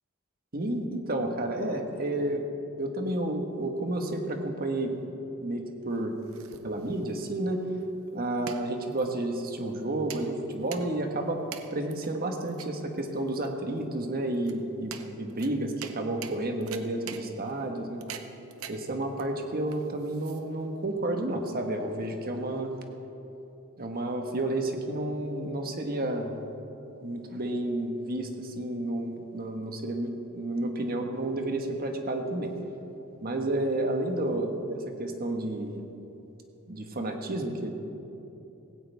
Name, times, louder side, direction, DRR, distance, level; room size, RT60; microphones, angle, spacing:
voice 1, 0.5-2.5 2.8-4.9 5.4-6.1 6.6-7.6 8.1-11.4 11.7-18.0 18.7-22.7 23.8-26.3 27.0-32.5 33.2-35.8 36.7-37.7, right 1 dB, 45° right, 4 dB, 1.4 m, -31 dB
sound 1, 5.9-20.8, right 7 dB, 70° right, 0.8 m, -46 dB
17.5 x 16.5 x 3.5 m, 3.0 s
head